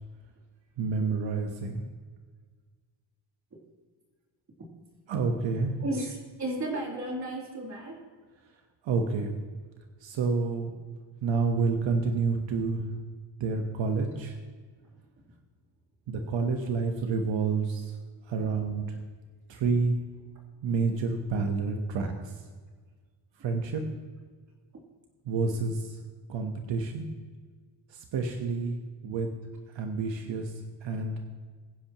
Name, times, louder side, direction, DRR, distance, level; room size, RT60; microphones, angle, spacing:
voice 1, 0.8-1.8 5.1-5.8 8.8-9.3 10.0-10.7 11.2-12.8 13.4-14.4 16.1-18.0 18.3-19.0 19.5-20.0 20.6-22.3 23.4-23.8 25.3-26.0 26.3-27.1 27.9-28.7 29.0-29.3 29.7-30.5 30.8-31.1, right 4 dB, 85° right, 4 dB, 1.3 m, -29 dB
voice 2, 5.8-8.0 14.9-15.2, right 1 dB, 40° right, -2 dB, 3.3 m, -34 dB
23.0 x 10.0 x 3.0 m, 1.5 s
wide cardioid pair, 175°, 43 cm